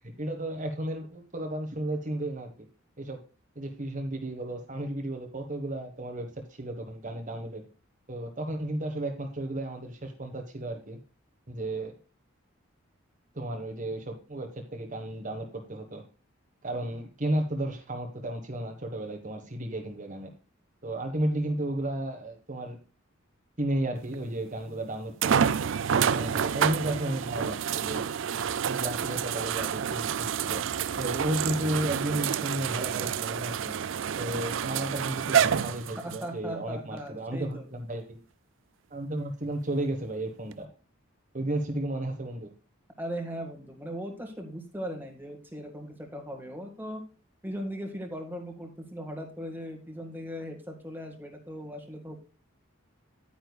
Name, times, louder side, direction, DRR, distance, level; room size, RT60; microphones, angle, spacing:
voice 1, 0.2-2.5 3.0-3.2 3.5-7.6 8.1-11.0 11.5-11.9 13.3-16.0 16.6-20.3 20.8-22.8 23.6-25.4 25.9-28.1 28.6-30.6 31.0-33.7 34.2-38.2 38.9-40.7 41.3-42.5, right 1 dB, 40° right, 3 dB, 1.4 m, -33 dB
sound 1, 24.1-24.2 25.2-36.2 37.0-37.1 40.5-40.6, right 8 dB, 60° right, 0.4 m, -28 dB
voice 2, 36.0-37.6 43.0-47.0 47.4-52.2, equal, 10° right, 3 dB, 1.8 m, -38 dB
10.5 x 9.4 x 2.3 m, 0.33 s
head